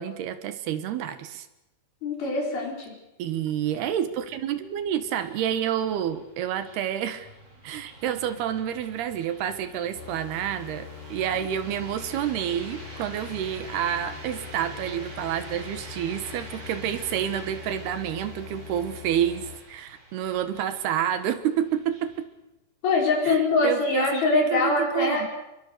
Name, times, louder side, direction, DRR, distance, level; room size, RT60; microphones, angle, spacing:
voice 1, 0.0-1.5 3.2-7.3 7.6-22.3 23.3-25.3, right 10 dB, 80° right, 11 dB, 3.4 m, -29 dB
voice 2, 2.0-3.0 22.8-25.2, left 3 dB, 70° left, 0 dB, 6.8 m, -23 dB
sound 1, 3.3-22.2, right 1 dB, 40° right, 6.5 m, -46 dB
sound 2, 9.9-19.6, left 8 dB, 30° left, 6.6 m, -43 dB
28.5 x 22.5 x 6.7 m, 0.95 s
omnidirectional pair, 4.6 m